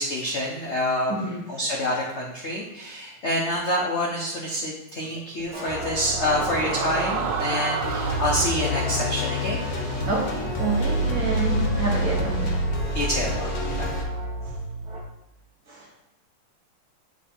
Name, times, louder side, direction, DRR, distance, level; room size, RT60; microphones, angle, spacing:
voice 1, 0.0-1.1 1.5-9.6 12.9-13.5, left 1 dB, 70° left, -2 dB, 0.6 m, -27 dB
voice 2, 1.1-1.4 5.7-6.0 10.0-12.7 13.7-13.8 14.5-14.6 15.7-15.9, right 2 dB, 50° right, -3 dB, 1.3 m, -29 dB
sound 1, 5.5-15.0, right 2 dB, 20° right, 1.0 m, -34 dB
sound 2, 5.5-11.1, right 5 dB, 75° right, 1.5 m, -33 dB
sound 3, 7.8-14.0, equal, 55° left, 1.2 m, -27 dB
7.2 x 3.3 x 4.3 m, 0.90 s
omnidirectional pair, 2.4 m